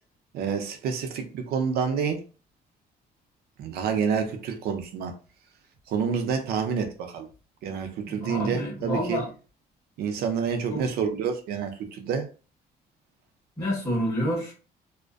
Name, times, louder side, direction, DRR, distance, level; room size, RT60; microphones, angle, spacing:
voice 1, 0.3-2.2 3.6-5.1 5.9-7.3 7.6-9.2 10.0-12.3, right 6 dB, 75° right, 0.5 m, -28 dB
voice 2, 8.1-9.3 10.7-10.8 13.6-14.5, equal, 20° left, 1.4 m, -28 dB
2.5 x 2.1 x 2.3 m
cardioid pair, 175°, 16 cm